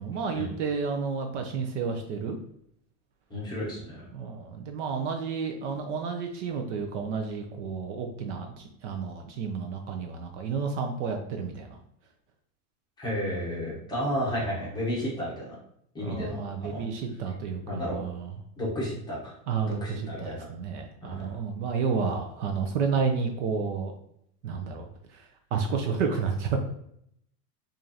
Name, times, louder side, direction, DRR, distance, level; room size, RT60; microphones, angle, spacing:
voice 1, 0.0-2.4 4.1-11.8 16.0-18.3 19.5-23.9 24.4-26.7, right 5 dB, 50° right, 4 dB, 0.5 m, -31 dB
voice 2, 3.3-4.0 13.0-15.6 15.9-16.9 17.7-18.1 18.6-19.3 19.7-20.5 21.0-21.4, equal, 10° left, -6 dB, 0.8 m, -32 dB
4.8 x 2.6 x 2.7 m, 0.71 s
supercardioid pair, 165°, 46 cm